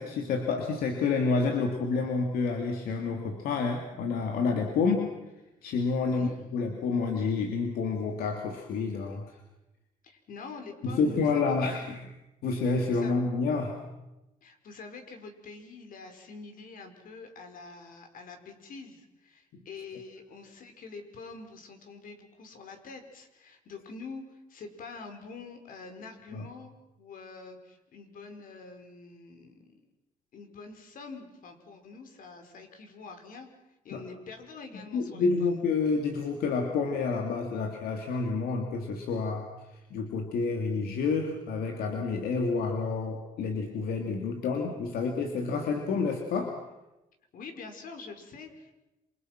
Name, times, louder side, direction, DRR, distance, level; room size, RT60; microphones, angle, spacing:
voice 1, 0.0-5.1 5.6-9.3 10.8-12.1 12.4-13.8 26.3-26.4 33.9-34.0 34.9-39.5 39.9-46.6, left 4 dB, 90° left, 3 dB, 2.7 m, -29 dB
voice 2, 6.0-6.3 10.0-11.9 12.8-13.2 14.4-29.8 30.3-33.5 33.8-35.6 47.3-48.7, left 4 dB, 70° left, 5 dB, 5.2 m, -46 dB
28.0 x 27.5 x 6.1 m, 0.96 s
cardioid pair, 105°, 15 cm